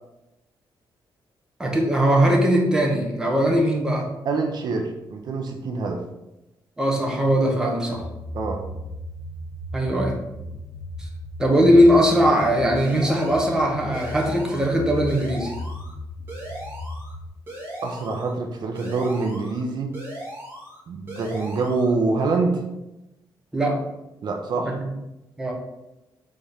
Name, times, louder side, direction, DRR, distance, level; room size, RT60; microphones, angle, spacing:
voice 1, 1.6-4.1 6.8-8.0 9.7-10.2 11.0-11.1 11.4-15.5 23.5-23.8 24.6-24.7 25.4-25.5, equal, 10° right, -1 dB, 0.8 m, -20 dB
voice 2, 4.2-6.0 8.3-8.7 17.8-20.0 20.9-22.6 24.2-24.8, right 3 dB, 55° right, 2 dB, 0.6 m, -25 dB
sound 1, 7.9-17.3, left 1 dB, 75° right, 1.2 m, -36 dB
sound 2, 12.8-13.6 13.9-14.8 15.1-15.9 16.3-17.1 17.5-18.3 18.8-19.6 19.9-20.8 21.1-21.9, equal, 30° right, 1.7 m, -38 dB
4.1 x 3.6 x 3.4 m, 0.93 s
wide cardioid pair, 155°, 8 cm